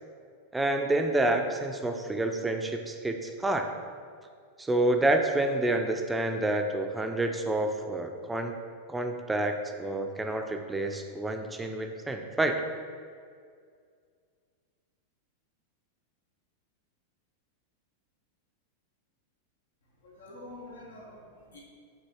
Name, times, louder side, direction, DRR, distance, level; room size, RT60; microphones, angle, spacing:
voice 1, 0.5-3.7 4.6-8.5 8.9-12.6, right 1 dB, 10° right, 5 dB, 0.3 m, -28 dB
voice 2, 20.0-21.6, left 1 dB, 85° left, -3 dB, 1.1 m, -47 dB
5.6 x 2.7 x 3.0 m, 2.1 s
hypercardioid pair, 105°, 0 cm